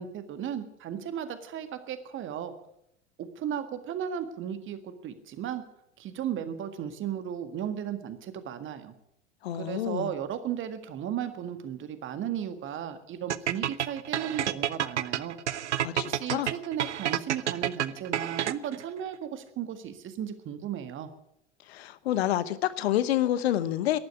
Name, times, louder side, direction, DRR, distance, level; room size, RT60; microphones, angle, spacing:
voice 1, 0.0-2.5 3.2-5.6 6.0-8.9 9.6-15.4 16.1-21.1, right 9 dB, 35° right, 10 dB, 1.8 m, -35 dB
voice 2, 9.4-10.1 15.8-16.5 21.7-24.0, left 12 dB, 60° left, 16 dB, 1.0 m, -28 dB
sound 1, 13.3-18.8, right 11 dB, 75° right, 0.7 m, -29 dB
12.0 x 11.0 x 9.8 m, 0.81 s
figure-of-eight pair, 80°, 35 cm